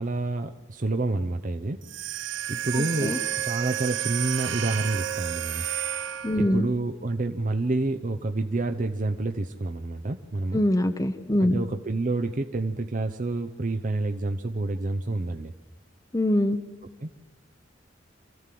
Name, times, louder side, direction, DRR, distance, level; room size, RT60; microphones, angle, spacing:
voice 1, 0.0-1.8 2.5-3.2 3.4-5.7 6.4-10.6 11.4-15.5 17.0-17.2, right 2 dB, 45° right, 7 dB, 0.8 m, -28 dB
sound 1, 1.8-6.6, right 11 dB, 75° right, 0.7 m, -31 dB
voice 2, 2.8-3.2 6.2-6.7 10.5-11.6 16.1-16.6, left 1 dB, 20° left, 8 dB, 0.8 m, -23 dB
27.0 x 14.5 x 7.7 m, 1.3 s
head